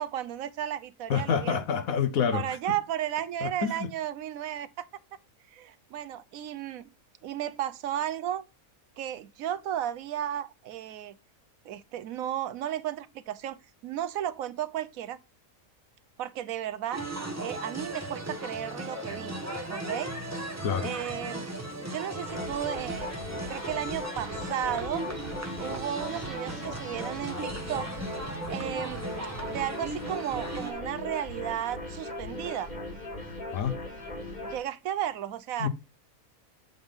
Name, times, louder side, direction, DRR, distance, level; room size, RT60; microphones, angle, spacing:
voice 1, 0.0-1.6 2.3-4.8 5.5-6.9 7.2-8.4 9.0-11.2 11.6-15.2 16.2-17.0 17.4-19.4 19.7-20.1 20.8-21.5 21.8-23.1 23.5-25.0 25.6-27.9 28.5-29.1 29.4-32.7 34.4-35.7, right 11 dB, 75° right, 1.0 m, -34 dB
voice 2, 1.1-2.5 3.4-3.9 20.6-20.9 33.5-33.7 35.6-35.7, left 7 dB, 75° left, 1.3 m, -27 dB
sound 1, 16.9-30.7, right 1 dB, 10° right, 1.2 m, -37 dB
sound 2, 22.3-34.6, left 1 dB, 30° left, 2.0 m, -39 dB
7.9 x 3.7 x 5.4 m
omnidirectional pair, 1.5 m